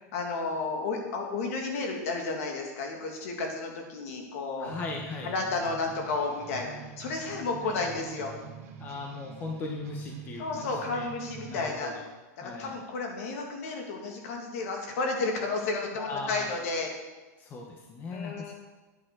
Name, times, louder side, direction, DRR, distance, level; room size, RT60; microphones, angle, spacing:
voice 1, 0.1-4.7 5.2-8.3 10.4-11.9 12.4-16.9 18.1-18.5, left 3 dB, 60° left, 2 dB, 2.7 m, -32 dB
voice 2, 4.6-5.3 7.6-7.7 8.8-10.7 10.9-11.1 11.4-11.9 12.4-12.7 16.0-16.5 17.4-18.5, left 3 dB, 20° left, 1 dB, 1.2 m, -38 dB
sound 1, 4.6-11.8, right 8 dB, 60° right, 1.8 m, -45 dB
9.7 x 9.4 x 6.3 m, 1.2 s
supercardioid pair, 170°, 9 cm